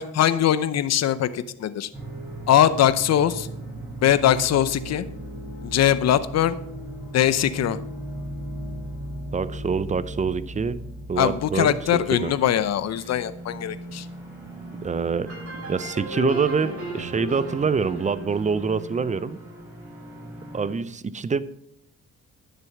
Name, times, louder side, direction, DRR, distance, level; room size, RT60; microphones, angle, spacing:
voice 1, 0.0-1.9 2.5-3.5 4.0-5.1 5.6-6.6 7.1-7.8 11.2-14.1, left 10 dB, 60° left, 15 dB, 0.8 m, -21 dB
sound 1, 1.9-20.8, right 1 dB, 5° right, 5.3 m, -38 dB
voice 2, 9.3-10.8 11.1-12.3 14.8-15.3 15.7-19.4 20.5-21.4, right 5 dB, 25° right, 16 dB, 0.6 m, -25 dB
sound 2, 15.2-19.8, equal, 50° right, 4.7 m, -36 dB
10.5 x 6.9 x 5.8 m, 0.71 s
cardioid pair, 90°, 30 cm